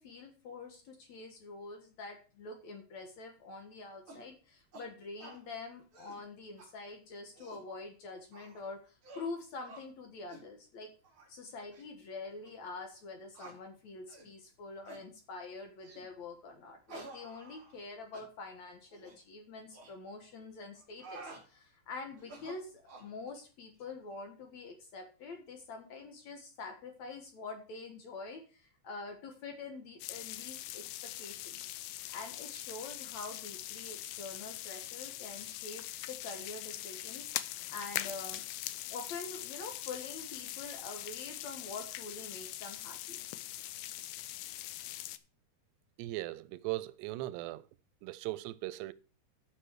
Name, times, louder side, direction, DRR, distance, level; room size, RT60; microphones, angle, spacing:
voice 1, 0.0-10.9 11.3-31.6 32.1-38.4 38.9-43.3, left 3 dB, 55° left, 2.2 m, -46 dB
sound 1, 4.1-4.3 4.7-4.9 5.2-5.4 5.8-6.2 6.6-6.7 7.2-7.7 8.3-8.6 9.0-9.3 9.6-9.8 10.3-10.5 11.0-11.3 11.7-11.8 12.4-12.5 13.3-13.6 14.1-14.3 14.8-15.0 15.8-16.1 16.9-17.8 18.1-18.3 18.9-19.2 19.7-19.9 20.7-21.4 22.2-23.1, right 3 dB, 30° right, 4.9 m, -51 dB
sound 2, 30.0-45.2, left 14 dB, 90° left, 2.0 m, -42 dB
voice 2, 46.0-47.7 48.0-48.9, right 18 dB, 90° right, 2.7 m, -38 dB
13.0 x 6.3 x 4.7 m
omnidirectional pair, 4.7 m